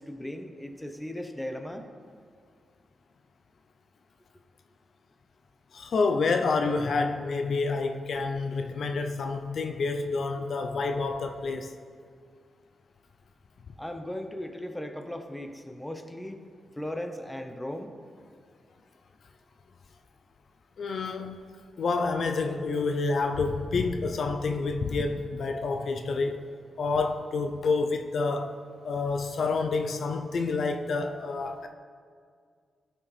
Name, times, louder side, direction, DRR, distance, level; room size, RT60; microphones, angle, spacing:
voice 1, 0.0-1.9 13.8-16.4 16.8-17.9, left 1 dB, 10° left, 6 dB, 0.8 m, -37 dB
voice 2, 5.7-11.7 20.8-21.4 21.8-26.5 26.8-28.5 28.8-31.7, left 4 dB, 65° left, 5 dB, 0.5 m, -28 dB
13.5 x 6.3 x 3.3 m, 2.1 s
cardioid pair, 70°, 0 cm